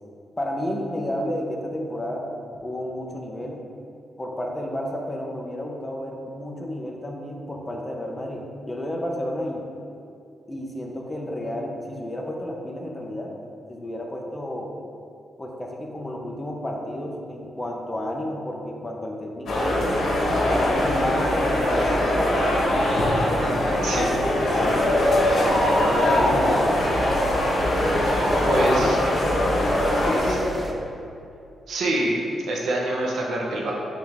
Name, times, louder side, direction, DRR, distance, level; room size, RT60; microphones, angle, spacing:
voice 1, 0.4-2.3 2.6-3.6 4.2-9.6 10.5-13.3 13.7-14.7 15.4-19.7 20.5-21.2 21.5-22.8 23.2-26.8 28.4-29.0 30.0-30.8, left 1 dB, 15° left, 0 dB, 0.8 m, -31 dB
sound 1, 19.5-30.3, left 1 dB, 70° left, 1.5 m, -22 dB
sound 2, 24.6-30.7, right 1 dB, 20° right, 0.7 m, -36 dB
voice 2, 28.5-29.0 30.3-30.4 31.7-32.1 32.5-33.7, right 2 dB, 80° right, -2 dB, 1.0 m, -25 dB
8.5 x 3.6 x 3.5 m, 2.6 s
cardioid pair, 100°, 0 cm